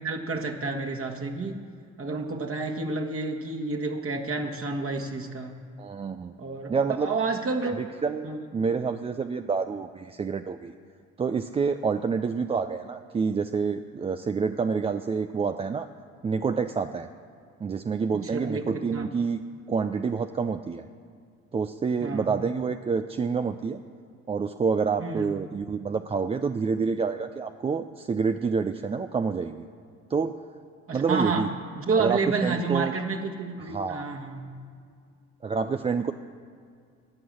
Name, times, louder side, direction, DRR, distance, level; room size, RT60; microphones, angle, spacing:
voice 1, 0.0-1.6 2.0-5.5 6.4-6.8 7.0-7.8 8.2-8.4 18.1-19.1 22.0-22.3 25.0-25.3 30.9-31.5 31.8-34.4, right 3 dB, 35° right, 2 dB, 1.5 m, -30 dB
voice 2, 5.8-6.3 6.7-7.2 7.7-8.3 8.5-10.7 11.2-15.9 16.2-17.1 17.6-19.4 19.7-20.8 21.5-23.8 24.3-29.6 30.1-30.4 30.9-31.5 32.0-32.9 33.6-34.1 35.4-36.1, right 5 dB, 15° right, 8 dB, 0.4 m, -28 dB
18.0 x 6.2 x 7.1 m, 2.2 s
figure-of-eight pair, 45°, 38 cm